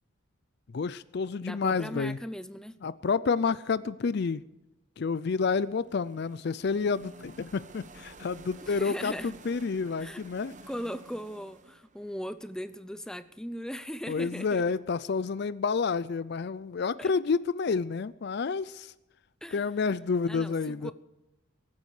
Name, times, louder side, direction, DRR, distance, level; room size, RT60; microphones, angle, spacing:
voice 1, 0.7-2.2 2.8-4.4 5.0-10.5 14.1-18.9 19.5-20.9, left 5 dB, 50° left, 16 dB, 0.4 m, -29 dB
voice 2, 1.4-2.8 8.7-9.3 10.0-10.2 10.7-14.6 17.0-17.1 19.4-19.6 20.3-20.9, equal, 5° left, 12 dB, 0.6 m, -38 dB
sound 1, 5.3-13.3, right 2 dB, 35° right, 1.0 m, -52 dB
23.5 x 9.6 x 4.9 m, 0.98 s
head